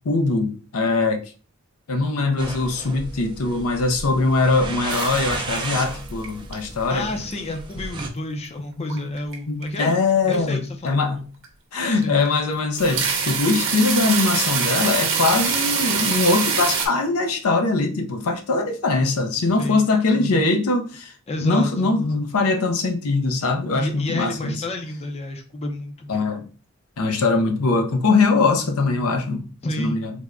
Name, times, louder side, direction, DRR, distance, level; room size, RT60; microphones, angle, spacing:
voice 1, 0.0-1.2 1.9-7.1 8.9-9.1 9.5-11.3 11.7-21.1 21.4-24.6 26.1-26.5 27.0-29.5 29.8-30.1, left 3 dB, 90° left, 0.6 m, -21 dB
sound 1, 2.4-8.1, right 3 dB, 20° right, 0.4 m, -33 dB
sound 2, 4.9-5.8 6.1-6.5 7.0-7.6 8.0-8.1 8.9-9.4 9.6-9.8 10.3-10.4 10.9-11.0 11.4-11.5 12.0-12.3 12.6-16.9, right 6 dB, 60° right, 0.8 m, -24 dB
voice 2, 6.9-10.0 10.3-11.0 11.9-12.2 19.6-19.9 20.3-20.5 21.3-21.9 23.7-26.2 29.6-30.0, left 1 dB, 30° left, 0.5 m, -30 dB
3.4 x 2.1 x 3.6 m
head